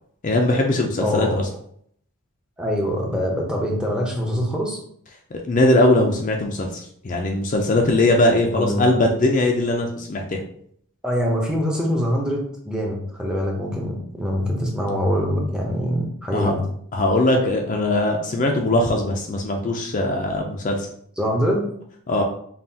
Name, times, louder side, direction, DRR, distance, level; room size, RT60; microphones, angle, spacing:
voice 1, 0.2-1.4 5.3-10.4 16.3-16.5 16.9-20.9 22.1-22.2, left 1 dB, 35° left, 1 dB, 0.4 m, -20 dB
voice 2, 1.0-1.4 2.6-4.8 8.5-8.8 11.0-12.4 12.6-16.6 21.2-21.7, equal, 5° right, -2 dB, 0.6 m, -24 dB
5.5 x 2.3 x 2.7 m, 0.66 s
head